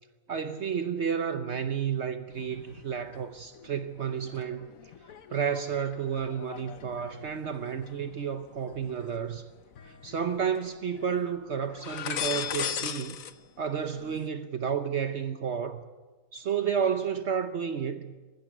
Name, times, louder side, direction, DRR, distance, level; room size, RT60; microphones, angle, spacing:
voice 1, 0.3-4.7 5.3-9.5 9.8-13.2 13.6-15.8 16.3-18.1, right 7 dB, 55° right, 1.1 m, -31 dB
sound 1, 2.3-3.2 3.5-9.2 9.7-10.7 10.9-11.2 11.7-13.3 13.6-14.3, left 9 dB, 75° left, 1.4 m, -39 dB
20.0 x 15.5 x 9.1 m
omnidirectional pair, 1.4 m